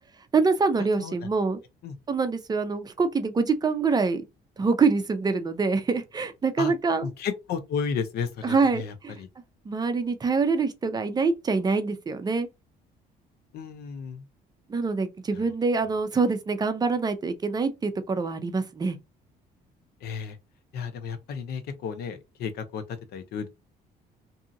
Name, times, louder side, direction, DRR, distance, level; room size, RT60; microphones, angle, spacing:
voice 1, 0.3-1.6 2.1-4.2 4.6-7.1 8.4-9.1 9.7-12.5 14.7-19.0, right 4 dB, 25° right, 0.5 m, -25 dB
voice 2, 7.0-9.3 13.5-14.2 20.0-20.4 20.7-23.5, left 6 dB, 70° left, 0.7 m, -33 dB
2.7 x 2.4 x 2.7 m
cardioid pair, 110°, 17 cm